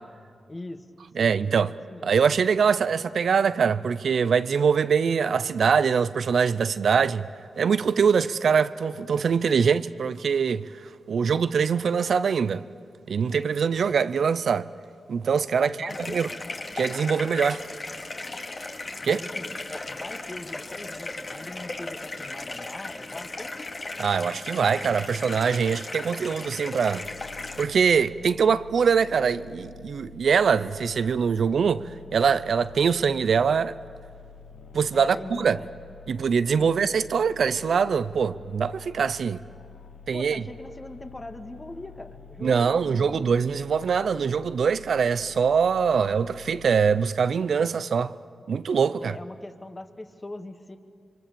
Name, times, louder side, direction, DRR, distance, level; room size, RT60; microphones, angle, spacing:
voice 1, 0.5-0.9 1.2-1.4 1.9-2.1 15.5-16.2 19.0-23.5 34.9-35.7 36.6-36.8 40.1-43.3 49.0-50.8, left 2 dB, 30° left, 1.9 m, -41 dB
voice 2, 1.2-1.7 2.0-7.3 7.6-10.6 11.1-12.6 13.1-14.7 15.1-16.3 16.7-17.6 19.1-19.2 24.0-27.1 27.6-33.8 34.7-35.6 36.1-39.4 40.1-40.4 42.4-48.1 48.5-49.2, right 6 dB, 75° right, 0.6 m, -23 dB
sound 1, 15.9-27.7, left 2 dB, 50° left, 2.4 m, -36 dB
sound 2, 27.0-46.9, left 5 dB, 85° left, 0.9 m, -47 dB
27.0 x 24.0 x 7.0 m
cardioid pair, 50°, 0 cm